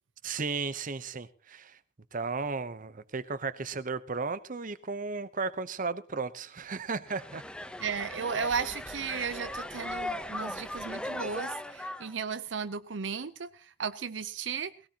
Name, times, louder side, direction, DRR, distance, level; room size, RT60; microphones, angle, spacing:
voice 1, 0.2-1.8 2.1-7.4, right 4 dB, 45° right, 0.8 m, -34 dB
sound 1, 7.1-12.1, left 1 dB, 5° left, 0.8 m, -38 dB
voice 2, 7.8-14.7, right 6 dB, 75° right, 0.7 m, -35 dB
19.5 x 17.0 x 2.9 m
head